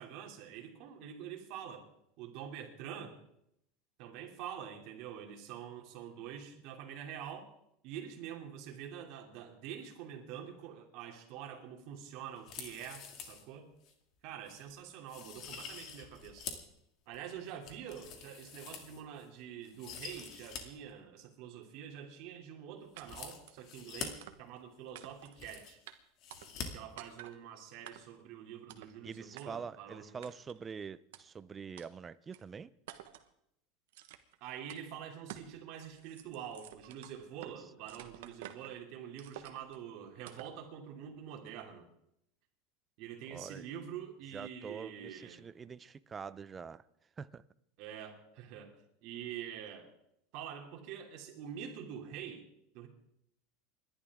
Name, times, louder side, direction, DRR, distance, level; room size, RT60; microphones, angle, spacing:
voice 1, 0.0-1.8 2.2-3.2 4.0-7.5 7.8-13.7 14.2-16.5 17.1-25.8 26.7-30.2 34.4-41.9 43.0-45.4 47.8-48.8 49.0-49.9 50.3-52.5 52.7-52.9, right 9 dB, 60° right, 2.8 m, -46 dB
sound 1, 12.4-13.4 13.8-13.9 14.5-14.6 15.1-16.7 17.1-19.3 19.6-20.6 20.9-21.0 23.0-24.1 24.9-25.0 25.2-25.9 26.2-26.7 26.9-27.0, left 7 dB, 50° left, 2.4 m, -46 dB
sound 2, 23.0-23.1 23.5-23.7 24.2-24.6 24.9-25.4 25.9-26.0 26.3-26.7 27.0-27.4 27.9-28.2 28.7-28.9 29.4-29.5 30.2-30.6 31.1-31.2 31.8-31.9 32.3-32.4 32.9-33.3 33.9-34.4 34.7-34.8 35.3-35.5 35.9-37.6 37.9-38.8 39.2-39.8 40.3-40.6, right 12 dB, 90° right, 1.3 m, -50 dB
voice 2, 29.0-32.7 43.3-43.7 44.3-46.8 47.2-47.4, right 6 dB, 20° right, 0.5 m, -45 dB
29.0 x 11.5 x 3.7 m
supercardioid pair, 140°, 0 cm